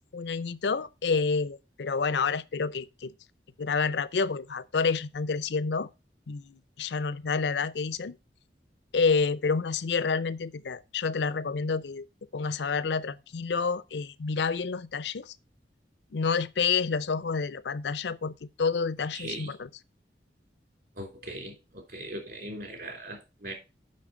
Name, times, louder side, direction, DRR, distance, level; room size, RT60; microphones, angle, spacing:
voice 1, 0.1-3.1 3.6-5.9 6.3-8.2 8.9-12.0 12.3-15.3 16.1-19.7, left 5 dB, 80° left, 0.5 m, -29 dB
voice 2, 19.1-19.5 21.0-23.5, right 1 dB, 60° right, 3.5 m, -39 dB
7.6 x 6.2 x 4.9 m
head